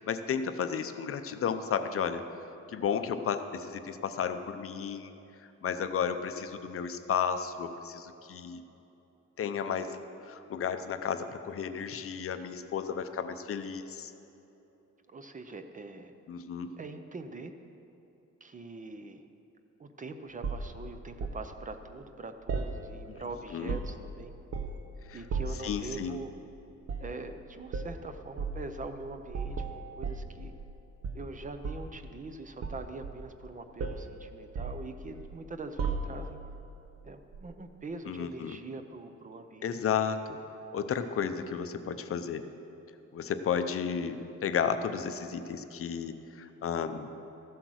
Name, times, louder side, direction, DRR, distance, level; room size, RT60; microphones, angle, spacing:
voice 1, 0.0-2.3 2.7-5.1 5.6-8.6 9.4-14.1 16.3-16.7 23.1-23.2 23.5-23.8 25.1-25.2 25.6-26.2 38.1-38.6 39.6-40.4 40.7-42.4 43.1-47.1, left 7 dB, 50° left, 9 dB, 0.6 m, -33 dB
voice 2, 15.1-16.1 16.8-17.5 18.4-19.2 19.8-24.3 25.1-26.3 27.0-30.5 31.1-36.4 37.0-39.8, right 3 dB, 25° right, 8 dB, 0.5 m, -43 dB
sound 1, 20.4-21.4 22.5-23.2 23.5-24.1 24.5-24.9 25.3-25.7 26.8-27.1 27.7-27.9 28.4-28.6 29.3-30.7 31.0-32.0 32.6-33.5 33.8-34.1 34.5-35.4 35.8-36.4 37.3-37.5, right 4 dB, 50° right, 0.9 m, -35 dB
14.5 x 8.0 x 6.3 m, 3.0 s
wide cardioid pair, 175°, 30 cm